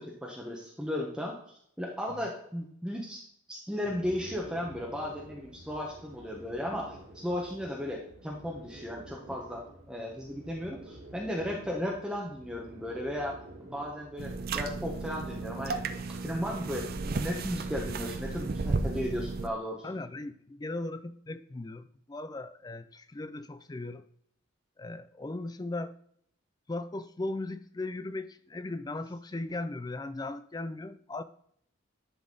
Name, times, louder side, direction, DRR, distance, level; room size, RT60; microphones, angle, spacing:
voice 1, 0.0-1.3 1.8-3.2 3.5-20.0, left 1 dB, 5° right, 0.9 m, -35 dB
sound 1, 3.8-17.2, right 1 dB, 75° right, 1.7 m, -50 dB
sound 2, 14.2-19.5, right 3 dB, 45° right, 0.4 m, -34 dB
voice 2, 19.8-24.0 24.8-25.9 26.7-31.2, left 2 dB, 20° left, 0.3 m, -38 dB
10.5 x 4.0 x 3.8 m
head